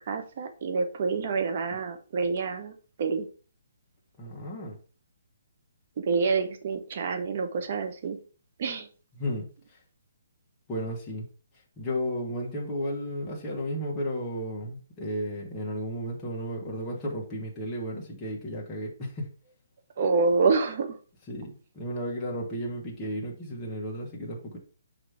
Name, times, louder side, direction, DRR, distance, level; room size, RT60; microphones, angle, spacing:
voice 1, 0.1-3.3 6.0-8.2 8.6-8.9 20.0-21.0, right 4 dB, 45° right, 1.1 m, -27 dB
voice 2, 4.2-4.8 9.2-9.8 10.7-11.2 11.8-19.3 21.3-24.6, equal, 15° left, 1.5 m, -33 dB
6.3 x 3.1 x 5.0 m
hypercardioid pair, 165°, 0 cm